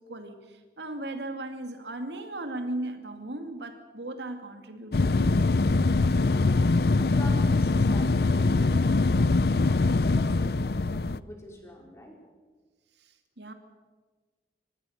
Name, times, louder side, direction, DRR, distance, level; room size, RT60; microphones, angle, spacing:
voice 1, 0.1-5.4 13.0-13.5, right 1 dB, 80° right, 6 dB, 2.4 m, -37 dB
sound 1, 4.9-11.2, left 3 dB, 65° left, 0.6 m, -23 dB
voice 2, 6.2-12.2, left 1 dB, 15° left, 0 dB, 4.7 m, -45 dB
26.0 x 19.0 x 6.6 m, 1.4 s
head